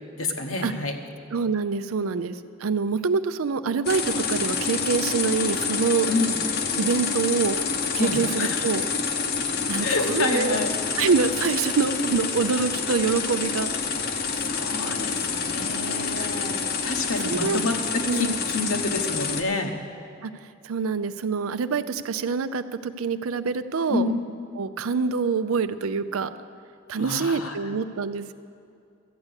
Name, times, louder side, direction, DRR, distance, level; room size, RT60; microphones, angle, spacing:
voice 1, 0.2-1.0 6.1-6.4 8.0-8.6 9.8-10.7 14.3-19.8 23.9-24.2 27.0-27.6, left 2 dB, 75° left, 3 dB, 1.2 m, -28 dB
voice 2, 1.3-6.1 6.8-7.6 7.9-8.8 9.7-10.6 11.0-13.7 16.2-16.3 17.2-17.6 18.1-18.4 20.2-20.3 20.6-24.1 24.6-26.3 26.9-28.3, right 5 dB, 85° right, 12 dB, 0.5 m, -25 dB
sound 1, 3.8-19.4, left 5 dB, 50° left, 0.8 m, -28 dB
13.0 x 8.3 x 8.1 m, 2.4 s
head